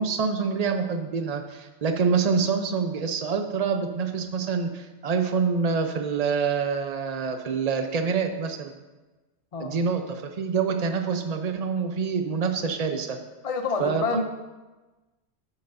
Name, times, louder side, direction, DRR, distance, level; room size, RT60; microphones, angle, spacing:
voice 1, 0.0-8.7 9.6-13.2 13.8-14.2, right 5 dB, 40° right, 6 dB, 0.8 m, -26 dB
voice 2, 13.4-14.2, left 4 dB, 40° left, 5 dB, 0.5 m, -28 dB
12.5 x 8.1 x 2.7 m, 1.2 s
omnidirectional pair, 1.1 m